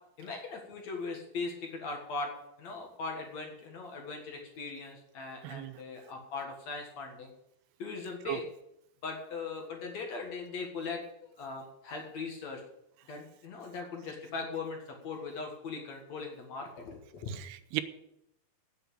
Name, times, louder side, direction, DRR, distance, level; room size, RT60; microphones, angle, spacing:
voice 1, 0.2-2.3 2.6-7.3 7.8-8.5 9.0-12.6 13.1-17.4, left 4 dB, 55° left, 1 dB, 2.4 m, -39 dB
voice 2, 5.4-5.8 8.3-8.4 17.4-17.8, right 15 dB, 90° right, 12 dB, 2.8 m, -35 dB
9.4 x 8.7 x 8.5 m, 0.82 s
omnidirectional pair, 4.7 m